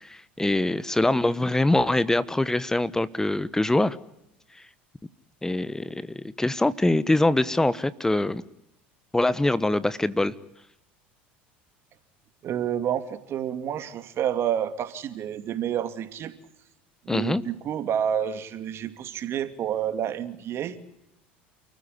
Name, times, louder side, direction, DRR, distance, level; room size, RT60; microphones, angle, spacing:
voice 1, 0.0-4.0 5.4-8.4 9.1-10.3 17.1-17.4, left 2 dB, 10° left, 17 dB, 1.2 m, -24 dB
voice 2, 12.4-16.3 17.0-20.8, right 9 dB, 45° right, 10 dB, 2.6 m, -29 dB
29.5 x 15.0 x 9.8 m, 0.82 s
hypercardioid pair, 80°, 6 cm